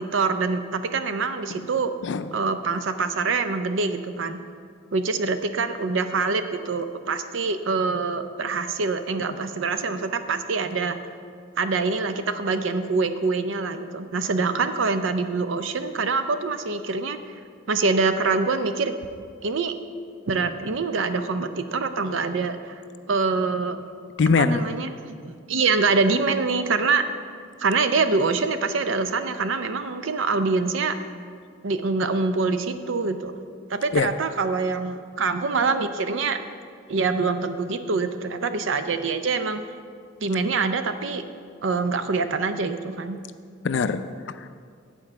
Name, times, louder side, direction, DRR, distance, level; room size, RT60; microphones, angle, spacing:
voice 1, 0.0-1.9 2.3-4.4 4.9-11.0 11.6-17.3 17.7-18.9 19.4-19.7 20.3-22.7 23.1-23.8 24.4-27.0 27.6-30.9 31.6-33.4 33.7-36.4 36.9-39.6 40.2-41.2 41.6-43.2, right 4 dB, 75° right, 9 dB, 0.5 m, -25 dB
voice 2, 24.2-24.6 33.9-34.1 43.6-44.5, left 4 dB, 60° left, 12 dB, 0.4 m, -23 dB
8.8 x 4.6 x 7.3 m, 2.1 s
head